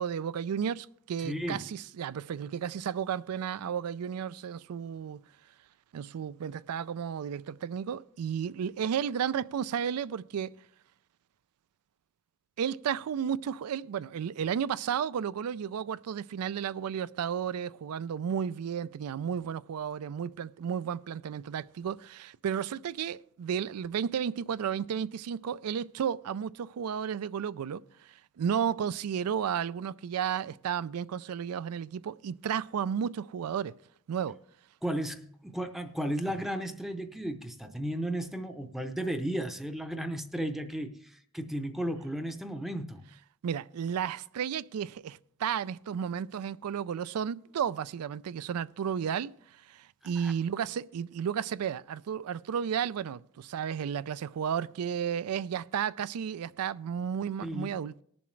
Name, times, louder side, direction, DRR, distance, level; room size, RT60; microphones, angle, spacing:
voice 1, 0.0-5.2 5.9-10.6 12.6-33.7 34.1-34.4 43.4-58.0, right 8 dB, 90° right, 0.4 m, -33 dB
voice 2, 1.2-1.6 34.8-43.1 50.2-50.3 57.4-57.8, right 1 dB, ahead, 0.6 m, -34 dB
19.5 x 7.1 x 3.2 m
head